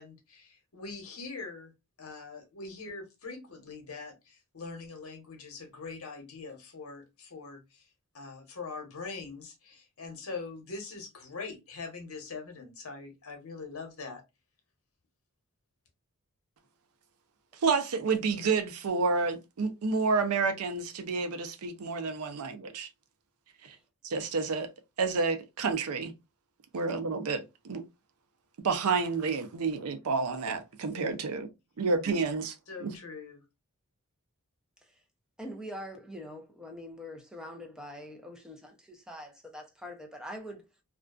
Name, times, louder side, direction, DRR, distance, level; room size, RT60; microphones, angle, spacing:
voice 1, 0.0-1.7 2.0-14.2 30.4-30.5 30.9-31.2 32.7-33.4, left 4 dB, 70° left, 0.9 m, -43 dB
voice 2, 17.6-22.9 23.6-23.8 24.0-24.7 25.0-26.1 26.7-27.8 28.6-31.5 31.8-32.6 32.8-32.9, right 4 dB, 85° right, 0.5 m, -29 dB
voice 3, 35.4-40.6, equal, 5° right, 0.5 m, -44 dB
2.4 x 2.2 x 2.3 m
head